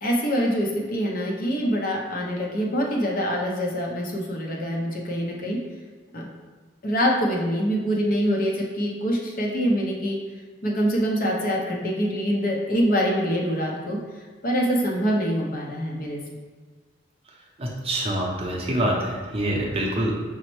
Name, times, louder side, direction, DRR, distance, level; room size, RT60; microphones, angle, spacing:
voice 1, 0.0-5.6 6.1-6.3 6.8-10.2 10.6-14.0 14.4-16.2, equal, 45° left, -2 dB, 0.6 m, -25 dB
voice 2, 17.6-20.1, right 1 dB, 30° right, -2 dB, 0.6 m, -25 dB
5.6 x 2.0 x 3.0 m, 1.4 s
head